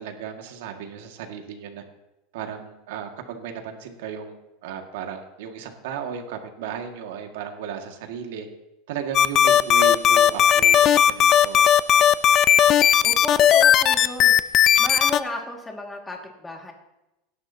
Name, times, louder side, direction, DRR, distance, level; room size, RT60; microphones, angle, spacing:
voice 1, 0.0-1.8 2.3-8.5 8.9-11.6, right 7 dB, 80° right, 4 dB, 2.0 m, -35 dB
sound 1, 9.1-15.2, left 9 dB, 40° left, 0.5 m, -16 dB
voice 2, 13.0-14.3 14.8-16.7, left 2 dB, 10° left, 1 dB, 2.1 m, -33 dB
17.0 x 11.5 x 2.9 m, 0.95 s
supercardioid pair, 135°, 0 cm